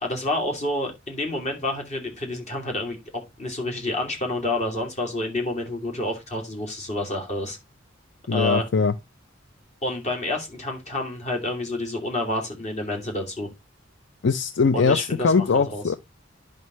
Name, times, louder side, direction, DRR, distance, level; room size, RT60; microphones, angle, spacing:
voice 1, 0.0-3.0 3.4-7.6 8.3-8.7 9.8-13.5 14.7-15.8, left 1 dB, 35° left, 2.7 m, -29 dB
voice 2, 8.3-8.9 14.2-15.9, left 5 dB, 65° left, 0.5 m, -21 dB
11.0 x 5.4 x 3.0 m
head